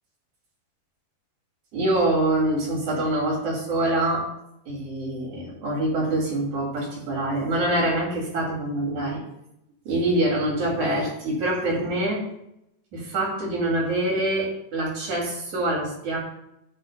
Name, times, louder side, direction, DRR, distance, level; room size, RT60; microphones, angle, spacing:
voice 1, 1.7-4.3 4.7-9.2 9.8-12.2 12.9-16.2, right 1 dB, 45° right, -2 dB, 3.4 m, -25 dB
17.0 x 6.1 x 2.2 m, 0.82 s
omnidirectional pair, 5.1 m